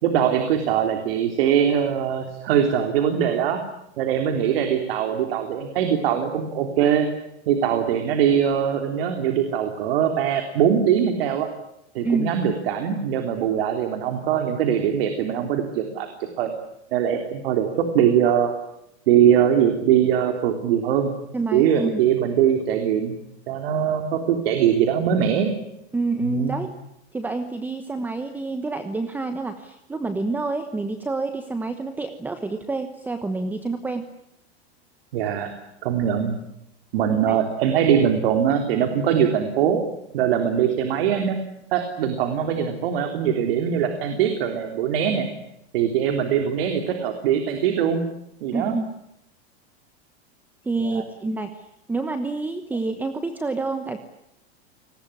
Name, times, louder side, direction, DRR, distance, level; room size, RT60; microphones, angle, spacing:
voice 1, 0.0-3.6 4.0-7.1 7.5-11.5 12.0-16.5 16.9-18.5 19.1-21.1 21.5-23.2 23.5-25.5 26.2-26.6 35.1-35.5 35.8-36.4 36.9-39.8 40.1-41.4 41.7-45.3 45.7-48.0 48.4-48.8 50.8-51.0, right 9 dB, 60° right, 6 dB, 3.5 m, -22 dB
voice 2, 21.3-22.0 25.9-26.8 27.1-34.1 37.3-37.4 48.5-48.8 50.6-54.0, right 3 dB, 5° right, 9 dB, 1.0 m, -28 dB
29.0 x 20.0 x 9.9 m, 0.82 s
supercardioid pair, 165°, 33 cm